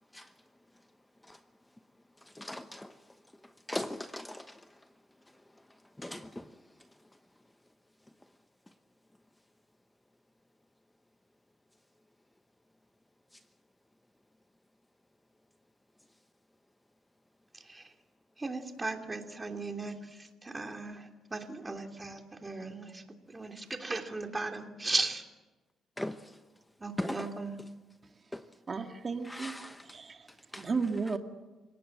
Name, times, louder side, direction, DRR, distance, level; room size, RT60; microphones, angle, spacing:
voice 1, 2.4-2.9 3.7-4.4 6.0-6.3 26.0-26.2 27.0-27.2 29.4-29.5 30.5-30.6, left 1 dB, 10° left, 0.9 m, -37 dB
voice 2, 17.5-17.9 18.4-25.2 26.8-27.6, right 3 dB, 20° right, 3.0 m, -37 dB
voice 3, 28.7-31.2, right 4 dB, 35° right, 1.8 m, -35 dB
28.5 x 18.0 x 7.8 m
cardioid pair, 90°, 0 cm